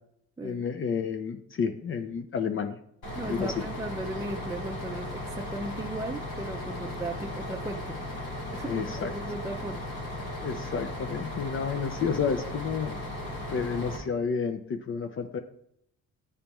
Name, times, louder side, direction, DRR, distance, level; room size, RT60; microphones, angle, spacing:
voice 1, 0.4-2.8 3.3-3.5 8.6-9.1 10.4-13.0 13.5-15.4, left 6 dB, 45° left, 6 dB, 0.5 m, -30 dB
Bus, 3.0-14.0, left 1 dB, 80° left, 2.0 m, -36 dB
voice 2, 3.2-8.2 8.5-9.9 13.5-13.7, right 2 dB, 10° right, 3 dB, 0.4 m, -37 dB
9.6 x 3.3 x 3.0 m, 0.73 s
cardioid pair, 90°, 30 cm